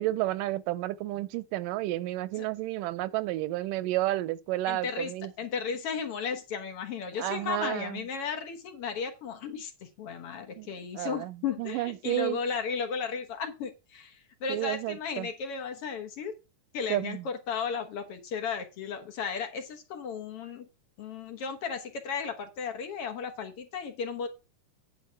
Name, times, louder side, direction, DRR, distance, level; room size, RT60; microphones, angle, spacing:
voice 1, 0.0-5.3 7.2-8.1 10.6-12.4 14.5-15.3 16.9-17.3, right 16 dB, 85° right, 2.3 m, -31 dB
voice 2, 4.7-5.1 5.4-16.4 16.7-20.7 21.0-24.3, left 6 dB, 55° left, 1.8 m, -35 dB
9.5 x 5.0 x 5.7 m
omnidirectional pair, 3.8 m